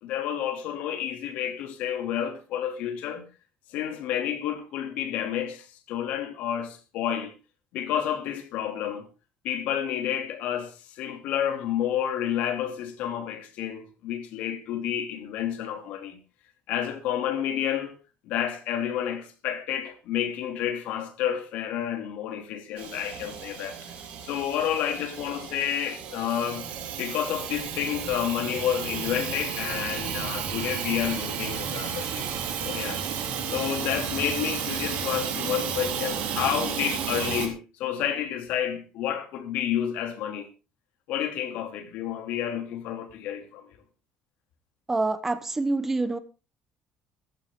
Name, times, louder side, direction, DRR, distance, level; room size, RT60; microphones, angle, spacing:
voice 1, 0.0-3.2 3.7-7.3 7.7-9.1 9.4-16.2 16.7-17.9 18.2-23.8 24.2-26.7 27.0-32.3 32.6-33.0 33.5-40.5 41.1-43.7, left 10 dB, 70° left, 2.8 m, -30 dB
Hiss / Toilet flush / Trickle dribble, 22.8-37.5, right 7 dB, 65° right, 3.8 m, -33 dB
voice 2, 44.9-46.2, right 3 dB, 15° right, 0.9 m, -26 dB
14.5 x 14.0 x 3.7 m
cardioid pair, 165°, 3 cm